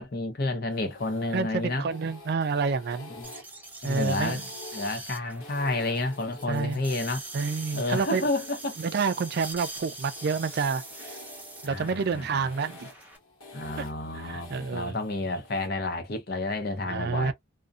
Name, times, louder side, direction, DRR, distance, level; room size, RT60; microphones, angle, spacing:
voice 1, 0.0-1.9 3.2-3.3 3.8-4.4 4.7-7.2 7.7-8.8 11.6-12.5 13.5-17.3, left 2 dB, 50° left, 0.7 m, -30 dB
sound 1, 0.7-15.7, left 2 dB, 85° left, 1.0 m, -49 dB
voice 2, 1.3-3.1 3.8-4.4 6.5-6.8 7.3-8.3 8.8-11.2 11.6-12.9 13.8-13.9 14.2-15.0 16.9-17.3, right 5 dB, 50° right, 0.3 m, -29 dB
sound 2, 3.2-13.2, right 2 dB, 10° right, 0.6 m, -43 dB
2.6 x 2.1 x 2.3 m
head